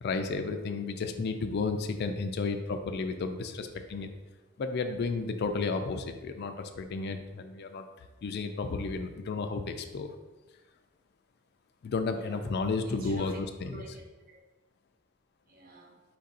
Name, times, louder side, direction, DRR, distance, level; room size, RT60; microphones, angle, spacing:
voice 1, 0.0-4.1 4.6-7.9 8.2-10.1 11.8-13.3 13.6-13.8, left 4 dB, 50° left, 7 dB, 0.3 m, -32 dB
voice 2, 12.1-12.5 12.8-14.4 15.5-16.0, right 1 dB, 45° right, 1 dB, 0.7 m, -48 dB
4.5 x 2.5 x 4.1 m, 1.2 s
head